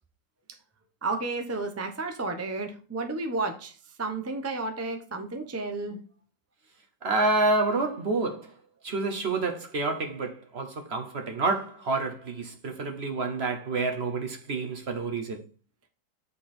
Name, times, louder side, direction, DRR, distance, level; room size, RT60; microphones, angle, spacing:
voice 1, 1.0-6.0, right 3 dB, 25° right, 0.3 m, -32 dB
voice 2, 7.0-8.5 8.8-15.4, right 3 dB, 45° right, 0.9 m, -28 dB
7.9 x 4.3 x 4.3 m
omnidirectional pair, 2.0 m